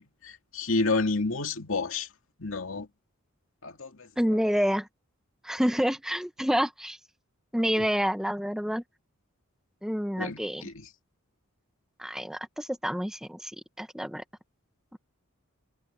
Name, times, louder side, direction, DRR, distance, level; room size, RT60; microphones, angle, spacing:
voice 1, 0.0-2.1 2.4-2.9 3.6-4.1 10.2-10.9, left 3 dB, 65° left, 2.4 m, -30 dB
voice 2, 4.2-4.9 5.4-7.0 7.5-8.8 9.8-10.6 12.0-13.5 13.8-14.2 14.9-15.0, equal, ahead, 0.9 m, -28 dB
head